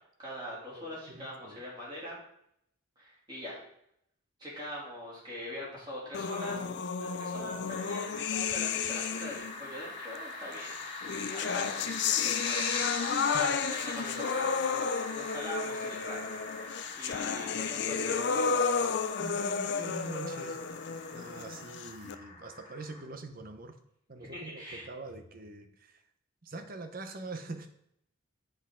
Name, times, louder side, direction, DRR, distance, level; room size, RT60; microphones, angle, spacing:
voice 1, 0.2-2.2 3.0-3.6 4.4-6.6 7.0-14.7 15.1-18.5 24.2-24.9, left 1 dB, 20° right, -6 dB, 3.1 m, -43 dB
voice 2, 0.7-1.6 13.3-13.5 19.2-20.8 21.1-23.8 24.1-26.0 26.4-27.7, right 3 dB, 40° right, 7 dB, 0.8 m, -44 dB
sound 1, 6.1-9.6 10.6-22.2, left 6 dB, 50° left, 0.4 m, -32 dB
sound 2, 7.7-23.0, left 3 dB, 25° left, 1.4 m, -42 dB
7.8 x 6.4 x 3.8 m, 0.74 s
head